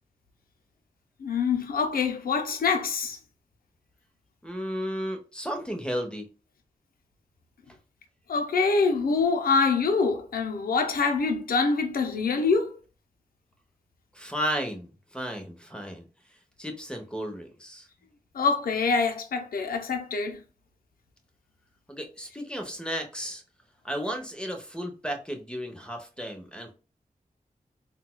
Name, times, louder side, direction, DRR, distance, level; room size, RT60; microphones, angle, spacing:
voice 1, 1.2-3.2 8.3-12.7 18.3-20.4, left 4 dB, 85° left, 0.6 m, -25 dB
voice 2, 4.4-6.2 14.1-16.1 16.6-17.9 21.9-23.4 23.8-26.7, equal, 5° left, 0.9 m, -34 dB
3.9 x 2.3 x 2.2 m
cardioid pair, 55°, 15 cm